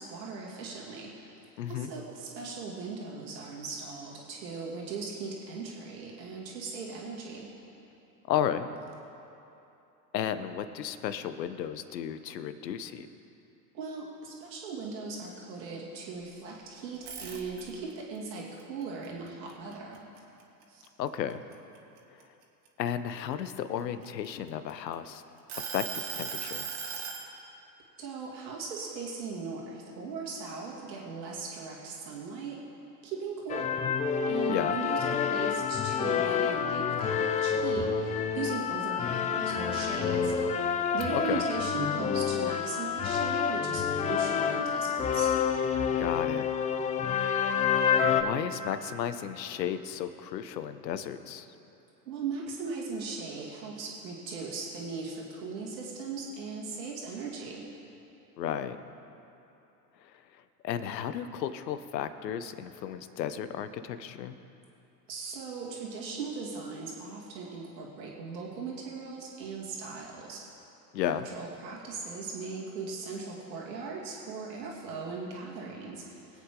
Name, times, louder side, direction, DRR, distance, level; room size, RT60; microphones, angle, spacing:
voice 1, 0.0-1.4 1.7-7.5 13.7-20.0 20.7-20.8 28.0-32.6 33.0-33.7 34.3-40.3 40.9-45.3 52.0-57.6 65.1-70.5 71.3-76.4, right 4 dB, 80° right, -4 dB, 2.8 m, -38 dB
voice 2, 1.6-1.9 8.3-8.7 10.1-13.1 21.0-21.4 22.8-25.2 25.7-26.7 34.5-34.8 41.1-41.4 46.0-46.5 48.1-51.5 58.4-58.8 60.6-64.4 70.9-71.3, left 9 dB, 80° left, 11 dB, 1.0 m, -33 dB
sound 1, 16.9-17.9 18.4-20.2 20.6-20.9 21.3-23.1 23.8-24.9 25.5-27.3, right 6 dB, 50° right, 2.1 m, -38 dB
sound 2, 33.5-48.2, left 7 dB, 15° left, 0.4 m, -28 dB
23.5 x 8.3 x 3.8 m, 2.8 s
hypercardioid pair, 90°, 50 cm